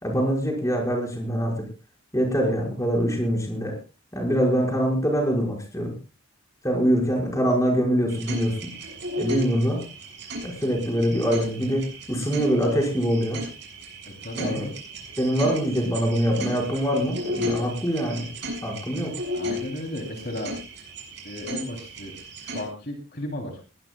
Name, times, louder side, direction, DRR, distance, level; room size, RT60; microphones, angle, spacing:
voice 1, 0.0-1.6 2.1-3.8 4.1-5.9 6.6-8.7 9.2-9.8 10.4-13.4 14.4-14.7 15.2-18.3 18.6-19.1, equal, 15° left, 0 dB, 5.3 m, -24 dB
sound 1, 8.1-22.6, equal, 55° right, 6.6 m, -35 dB
voice 2, 14.0-14.7 19.3-20.5 21.2-22.1 22.4-23.5, left 1 dB, 50° left, 2 dB, 3.1 m, -34 dB
21.0 x 18.0 x 2.3 m, 0.33 s
head